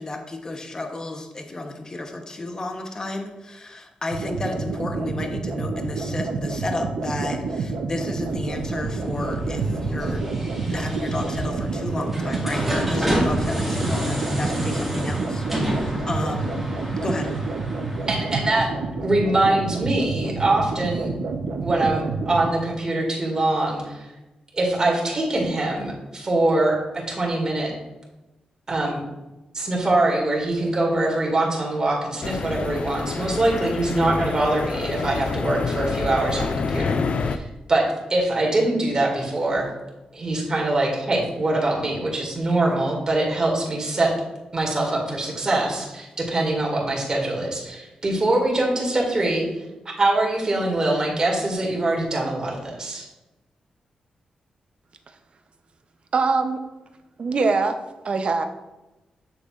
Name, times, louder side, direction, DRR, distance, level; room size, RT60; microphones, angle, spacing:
voice 1, 0.0-10.3 10.7-16.7 16.9-17.4, left 2 dB, 30° left, 4 dB, 0.9 m, -32 dB
sound 1, 4.1-22.5, right 4 dB, 90° right, 0.8 m, -29 dB
sound 2, 8.1-18.8, equal, 5° right, 1.9 m, -29 dB
voice 2, 18.1-18.7 19.0-21.1 21.6-24.1 24.5-27.7 28.7-29.0 29.5-39.7 40.1-44.2 44.5-49.5 49.9-53.1, right 2 dB, 30° right, -3 dB, 2.1 m, -23 dB
sound 3, 32.2-37.4, left 5 dB, 50° left, 0.3 m, -27 dB
voice 3, 56.1-56.6 57.2-57.8 58.0-58.4, right 4 dB, 50° right, 7 dB, 0.6 m, -22 dB
7.5 x 6.7 x 2.5 m, 1.0 s
wide cardioid pair, 120°, 2 cm